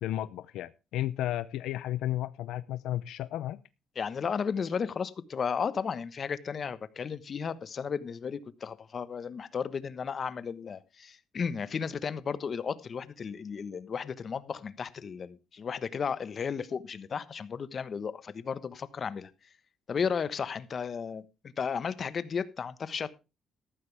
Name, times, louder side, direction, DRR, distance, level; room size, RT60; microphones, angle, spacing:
voice 1, 0.0-3.6, left 13 dB, 90° left, 14 dB, 0.6 m, -33 dB
voice 2, 3.9-19.3 19.9-21.3 21.6-23.1, left 6 dB, 45° left, 14 dB, 1.2 m, -34 dB
14.0 x 12.0 x 3.5 m, 0.29 s
cardioid pair, 90°, 0 cm